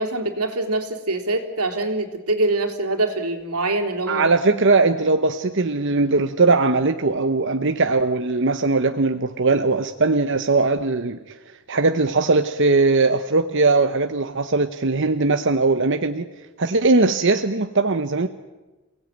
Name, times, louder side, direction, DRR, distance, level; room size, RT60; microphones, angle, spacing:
voice 1, 0.0-4.3, right 2 dB, 90° right, 3.5 m, -24 dB
voice 2, 4.1-11.2 11.7-16.3 16.6-18.3, right 3 dB, 55° right, 1.0 m, -20 dB
28.5 x 17.5 x 9.3 m
head